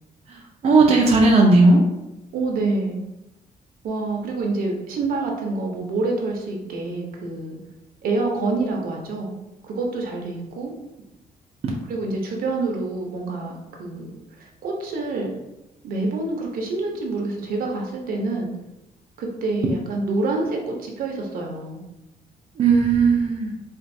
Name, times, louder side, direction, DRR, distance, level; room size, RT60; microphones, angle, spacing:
voice 1, 0.3-1.9 22.6-23.5, right 3 dB, 45° right, -2 dB, 0.5 m, -16 dB
voice 2, 2.3-3.0 3.8-7.6 8.0-9.3 9.6-10.7 11.9-14.1 14.6-15.4 15.8-18.5 19.2-21.8, right 3 dB, 70° right, 0 dB, 0.8 m, -27 dB
4.4 x 2.4 x 2.6 m, 0.94 s
cardioid pair, 140°, 15 cm